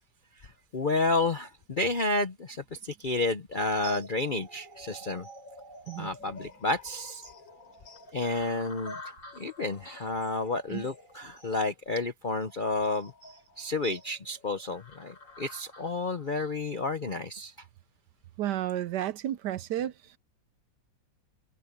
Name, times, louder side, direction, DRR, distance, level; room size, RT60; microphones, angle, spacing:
voice 1, 0.4-5.3 6.0-7.2 8.1-13.1 13.6-17.5, left 2 dB, 50° left, 0.6 m, -31 dB
sound 1, 3.5-16.6, equal, 80° left, 6.6 m, -48 dB
voice 2, 18.4-19.9, right 12 dB, 70° right, 1.1 m, -31 dB
omnidirectional pair, 2.1 m